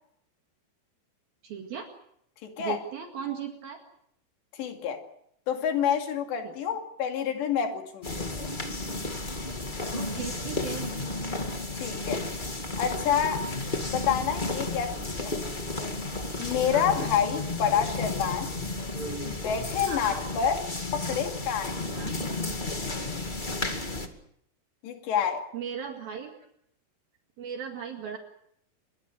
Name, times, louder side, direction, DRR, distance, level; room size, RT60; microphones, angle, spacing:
voice 1, 1.4-1.9 2.6-3.8 6.4-6.5 9.9-10.9 16.7-16.9 19.8-20.2 21.9-22.1 25.5-26.3 27.4-28.2, right 7 dB, 60° right, 3.7 m, -37 dB
voice 2, 2.4-2.8 4.5-5.0 5.5-8.5 11.7-12.2 12.8-13.5 13.8-15.3 16.4-18.5 19.2-20.6 20.9-21.7 24.8-25.5, left 8 dB, 80° left, 4.7 m, -28 dB
sound 1, 8.0-24.1, left 2 dB, 60° left, 0.5 m, -33 dB
27.5 x 23.5 x 6.3 m
omnidirectional pair, 5.0 m